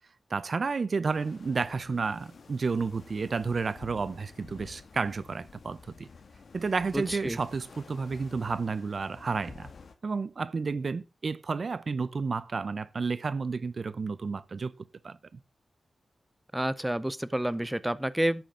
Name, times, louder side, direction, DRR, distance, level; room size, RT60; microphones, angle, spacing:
voice 1, 0.3-6.1 6.5-9.7 10.0-14.7 15.0-15.4, right 4 dB, 50° right, 0.6 m, -31 dB
sound 1, 1.0-9.9, left 4 dB, 65° left, 1.5 m, -51 dB
voice 2, 6.9-7.4 16.5-18.4, right 1 dB, 10° right, 0.6 m, -29 dB
11.5 x 8.9 x 3.8 m
wide cardioid pair, 120°, 0 cm